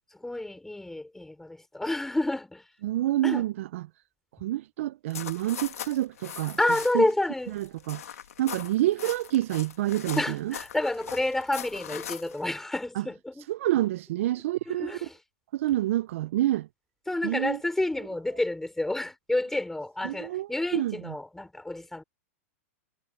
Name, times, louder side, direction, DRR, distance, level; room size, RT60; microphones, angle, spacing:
voice 1, 0.1-2.7 3.2-3.5 6.6-7.6 10.2-13.5 14.7-15.2 17.1-22.0, left 2 dB, 5° left, 3.9 m, -29 dB
voice 2, 2.8-3.8 4.4-6.6 6.9-7.0 7.5-8.0 8.4-10.5 13.0-13.1 13.5-14.9 15.5-16.7 17.2-17.6 20.0-21.1, right 14 dB, 65° right, 0.5 m, -28 dB
sound 1, 5.1-7.1 7.4-12.4, left 9 dB, 90° left, 2.0 m, -41 dB
hypercardioid pair, 135°, 8 cm